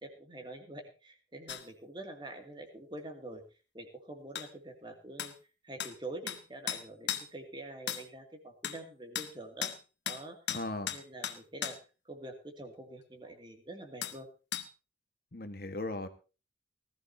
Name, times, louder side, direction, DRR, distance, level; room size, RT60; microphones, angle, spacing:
voice 1, 0.0-3.4 3.7-5.3 5.6-9.7 10.1-10.4 10.8-11.8 12.1-14.3, right 2 dB, 25° right, 5 dB, 2.4 m, -46 dB
sound 1, 1.5-1.6 4.3-4.5 5.2-5.3 5.8-5.9 6.3-6.4 6.7-7.3 7.9-8.0 8.6-8.8 9.1-9.3 9.6-9.8 10.1-10.2 10.5-11.8 14.0-14.2 14.5-14.7, left 10 dB, 75° left, 1.3 m, -36 dB
voice 2, 10.5-10.9 15.3-16.1, left 2 dB, 50° left, 9 dB, 1.4 m, -37 dB
19.0 x 14.5 x 2.8 m, 0.32 s
head